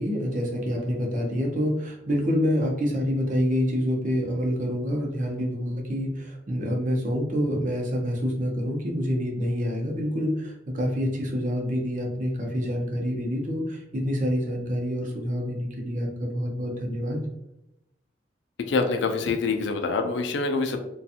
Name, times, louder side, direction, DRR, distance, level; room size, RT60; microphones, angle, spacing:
voice 1, 0.0-17.2, equal, 45° right, 0 dB, 0.6 m, -27 dB
voice 2, 18.7-20.8, left 4 dB, 70° left, 5 dB, 0.4 m, -25 dB
2.5 x 2.3 x 2.7 m, 0.89 s
head